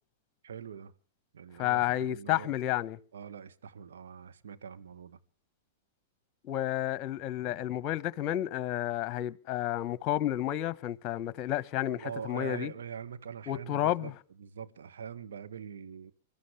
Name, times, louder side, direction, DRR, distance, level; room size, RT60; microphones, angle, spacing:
voice 1, 0.4-0.9 1.3-1.8 2.1-2.5 3.1-5.2 11.9-14.1 14.4-16.1, right 7 dB, 75° right, 1.6 m, -43 dB
voice 2, 1.6-3.0 6.4-12.7 13.5-14.1, left 13 dB, 40° left, 1.3 m, -31 dB
29.5 x 13.5 x 3.4 m
hypercardioid pair, 105°, 0 cm